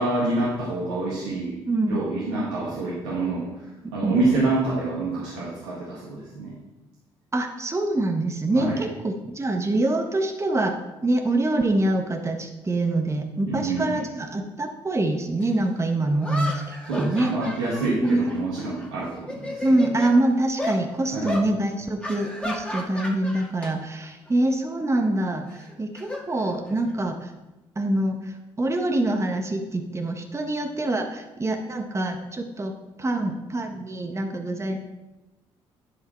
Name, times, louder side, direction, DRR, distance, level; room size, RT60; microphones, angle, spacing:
voice 1, 0.0-1.6 1.9-6.5 8.5-8.9 13.5-14.0 16.9-19.9 21.1-21.3, right 2 dB, 85° right, -7 dB, 1.7 m, -27 dB
voice 2, 1.7-2.0 4.0-4.2 7.3-10.8 11.0-17.3 18.0-18.3 19.6-27.3 27.8-32.7 33.0-34.8, right 2 dB, 20° right, 4 dB, 1.1 m, -25 dB
sound 1, 15.4-15.5 16.2-18.9 19.2-20.1 20.6-20.8 21.2-21.5 22.0-23.7 24.0-24.3 25.5-26.9, left 1 dB, 10° left, 2.1 m, -33 dB
11.0 x 4.7 x 4.3 m, 1.0 s
hypercardioid pair, 45°, 13 cm